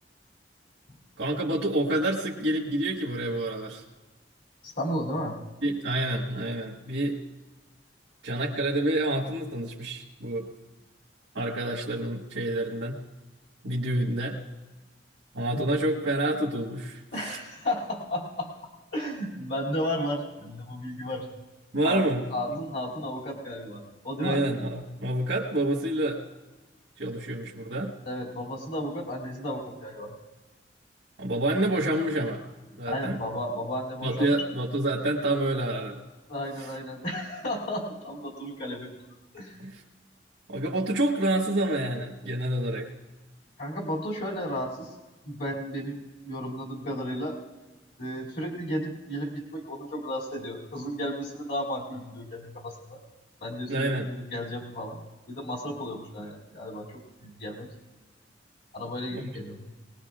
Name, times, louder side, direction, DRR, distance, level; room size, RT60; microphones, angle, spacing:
voice 1, 1.2-3.8 5.6-7.2 8.2-10.5 11.3-13.0 13.6-14.4 15.3-17.4 21.7-22.6 24.2-26.2 27.0-27.9 31.2-32.4 32.7-33.2 34.0-36.0 39.6-39.8 40.5-42.9 53.7-54.1 59.1-59.2, right 1 dB, 90° right, -4 dB, 1.5 m, -28 dB
voice 2, 4.6-5.4 15.5-15.8 17.1-18.5 18.9-21.3 21.8-24.4 28.0-30.2 32.9-34.3 36.3-38.9 39.3-39.6 43.6-44.9 45.3-47.4 48.0-53.0 53.4-57.7 58.7-59.7, equal, 65° left, -4 dB, 2.7 m, -33 dB
21.5 x 19.5 x 2.4 m, 1.2 s
head